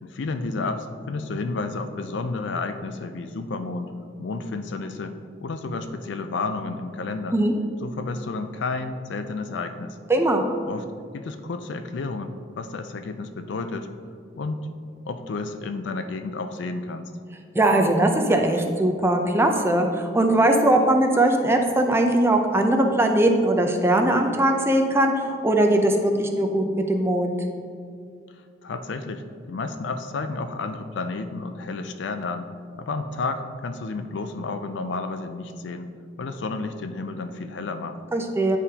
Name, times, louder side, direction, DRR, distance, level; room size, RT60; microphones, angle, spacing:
voice 1, 0.0-3.9 4.2-7.4 7.8-10.0 10.7-10.9 11.1-13.9 14.4-14.7 15.1-17.1 28.6-32.5 32.8-35.9 36.2-38.0, left 3 dB, 70° left, 8 dB, 0.4 m, -31 dB
voice 2, 10.1-10.4 17.5-27.4 38.1-38.6, right 1 dB, 15° right, 4 dB, 0.4 m, -20 dB
9.7 x 3.6 x 2.8 m, 2.2 s
head